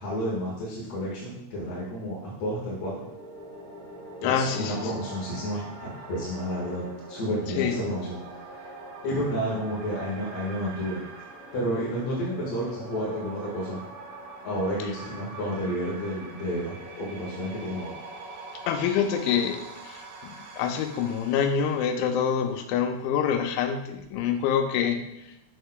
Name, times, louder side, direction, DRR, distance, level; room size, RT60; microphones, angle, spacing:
voice 1, 0.0-3.1 4.2-8.7 9.0-11.0 11.5-13.8 14.4-17.9, equal, 60° left, -5 dB, 1.9 m, -31 dB
sound 1, 2.7-22.5, right 2 dB, 80° right, 3.8 m, -43 dB
voice 2, 4.2-4.9 7.6-7.9 18.7-25.0, left 7 dB, 90° left, 6 dB, 3.0 m, -26 dB
8.0 x 6.5 x 2.2 m, 0.84 s
omnidirectional pair, 5.2 m